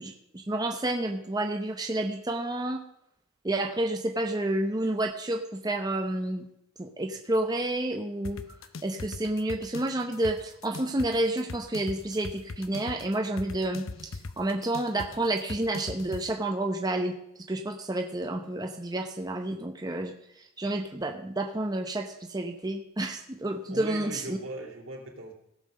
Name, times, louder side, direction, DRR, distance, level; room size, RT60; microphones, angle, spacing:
voice 1, 0.0-2.8 3.4-6.4 6.8-8.4 8.8-17.2 17.5-24.4, right 1 dB, 20° right, 4 dB, 0.8 m, -30 dB
sound 1, 8.2-16.2, left 3 dB, 85° left, 0.7 m, -40 dB
voice 2, 23.7-25.3, right 1 dB, 80° right, 0 dB, 3.3 m, -39 dB
16.5 x 5.9 x 6.5 m, 0.77 s
head